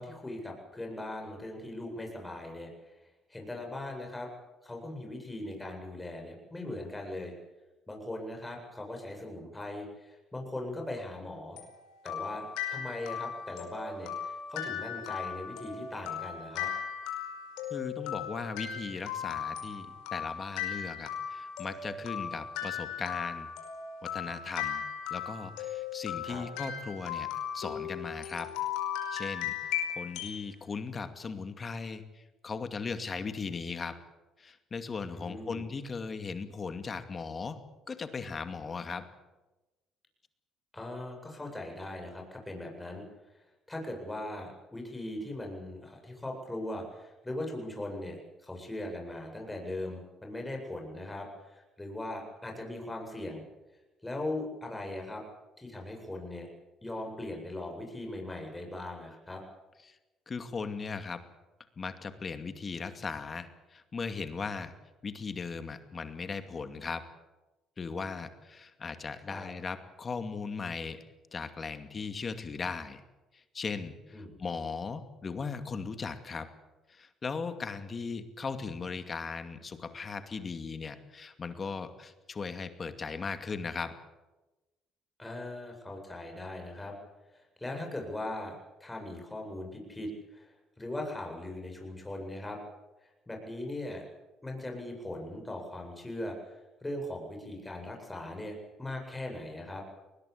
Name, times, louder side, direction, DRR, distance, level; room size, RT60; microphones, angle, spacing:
voice 1, 0.0-3.0 3.3-4.3 4.6-7.3 7.9-11.6 12.0-16.7 26.2-26.4 35.1-35.7 40.7-43.0 43.7-53.4 54.0-55.2 55.6-56.5 56.8-59.4 69.3-69.5 74.1-74.3 85.2-86.9 87.3-88.5 88.8-90.5 90.8-92.6 93.3-94.1 94.4-99.8, left 1 dB, 15° left, 2 dB, 7.9 m, -39 dB
sound 1, 11.6-30.4, left 8 dB, 85° left, 5.1 m, -37 dB
voice 2, 17.7-23.5 24.0-24.8 25.1-27.3 27.5-28.5 29.1-29.5 30.0-34.0 34.4-37.6 37.9-39.1 59.8-60.0 60.3-61.2 61.8-64.7 65.0-67.1 67.8-71.0 71.3-73.0 73.3-76.5 76.9-84.0, left 5 dB, 35° left, 9 dB, 2.4 m, -38 dB
21.5 x 20.0 x 8.6 m, 1.1 s
supercardioid pair, 75°, 0 cm